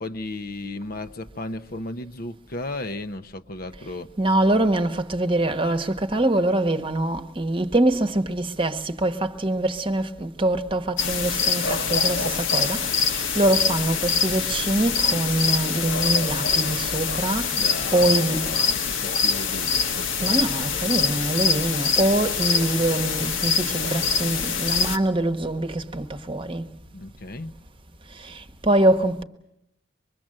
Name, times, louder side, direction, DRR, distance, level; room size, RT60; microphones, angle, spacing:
voice 1, 0.0-4.1 17.5-20.1 26.9-27.6, left 2 dB, 50° left, 0.9 m, -35 dB
voice 2, 4.2-17.5 17.9-18.5 20.2-26.7 28.2-29.2, right 1 dB, 25° right, 1.1 m, -24 dB
sound 1, 11.0-25.0, left 6 dB, 85° left, 1.7 m, -24 dB
24.5 x 22.5 x 7.6 m
head